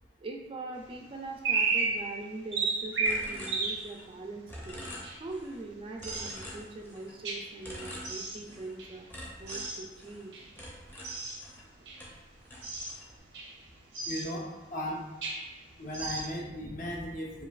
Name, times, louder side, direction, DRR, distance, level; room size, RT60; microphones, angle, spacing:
voice 1, 0.2-4.9 5.2-9.1 9.4-10.5, right 2 dB, 30° right, 1 dB, 0.4 m, -42 dB
sound 1, 0.8-0.9 1.3-4.1 4.7-5.4 6.0-6.6 7.2-7.5 8.0-8.5 8.8-9.9 10.3-10.6 11.0-11.5 11.9-12.1 12.6-13.0 13.3-13.6 13.9-14.4 15.0-15.6 15.9-16.2, right 4 dB, 80° right, 0.7 m, -33 dB
sound 2, 3.1-4.2 4.5-5.6 6.0-7.2 7.6-8.8 9.1-11.7 12.0-13.2, equal, 10° left, 0.7 m, -45 dB
voice 2, 14.1-15.0 15.8-17.4, equal, 50° left, -2 dB, 0.8 m, -36 dB
5.2 x 2.3 x 2.4 m, 1.2 s
head